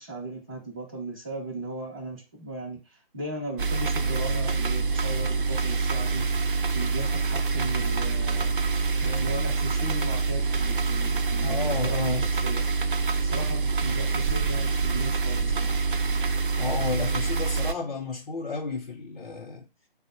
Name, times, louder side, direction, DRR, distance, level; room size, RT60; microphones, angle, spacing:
voice 1, 0.0-6.2 6.7-8.6 9.0-12.7 13.2-15.7, right 1 dB, 10° right, 0.5 m, -37 dB
sound 1, 3.6-17.7, right 4 dB, 60° right, 0.5 m, -26 dB
voice 2, 11.4-12.3 16.6-19.7, left 4 dB, 60° left, 0.7 m, -32 dB
3.9 x 2.1 x 4.2 m
figure-of-eight pair, 155°, 29 cm